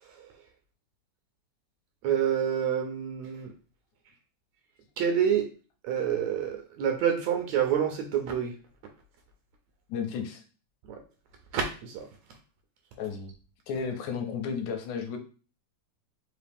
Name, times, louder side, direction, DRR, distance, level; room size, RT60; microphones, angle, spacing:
voice 1, 0.0-0.3 2.0-3.5 5.0-5.5 5.8-8.6 10.9-11.0 11.5-12.1, right 8 dB, 75° right, 1.7 m, -28 dB
voice 2, 9.9-10.4 13.0-13.3 13.7-15.2, left 6 dB, 75° left, 2.0 m, -33 dB
4.8 x 2.8 x 3.4 m
omnidirectional pair, 3.3 m